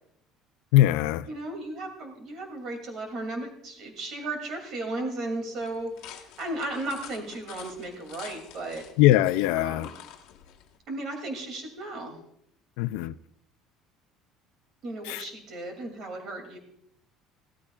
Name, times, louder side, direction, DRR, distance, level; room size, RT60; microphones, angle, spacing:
voice 1, 0.7-1.3 9.0-9.9 12.8-13.1 15.0-15.2, left 15 dB, 85° left, 0.4 m, -21 dB
voice 2, 1.3-8.8 9.5-9.9 10.9-12.2 14.8-16.6, right 2 dB, 40° right, 2.6 m, -35 dB
sound 1, 5.6-10.8, left 10 dB, 65° left, 1.3 m, -48 dB
16.5 x 13.0 x 2.4 m
cardioid pair, 175°, 0 cm